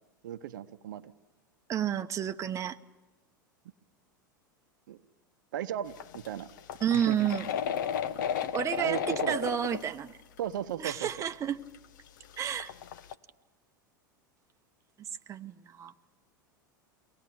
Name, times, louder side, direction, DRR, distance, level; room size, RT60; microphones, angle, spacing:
voice 1, 0.2-1.1 4.9-5.0 5.5-6.5 6.9-7.3 8.1-8.3 8.8-9.4 10.4-11.1, right 10 dB, 65° right, 10 dB, 0.8 m, -36 dB
voice 2, 1.7-2.8 6.8-7.5 8.5-10.2 10.8-11.6 12.4-12.7 15.0-15.9, right 9 dB, 25° right, 8 dB, 0.8 m, -31 dB
sound 1, 6.0-9.9 10.4-10.5 10.9-11.0 11.7-11.8 12.1-13.1, left 8 dB, 65° left, 0.9 m, -34 dB
23.5 x 18.5 x 8.7 m, 1.2 s
hypercardioid pair, 90°, 11 cm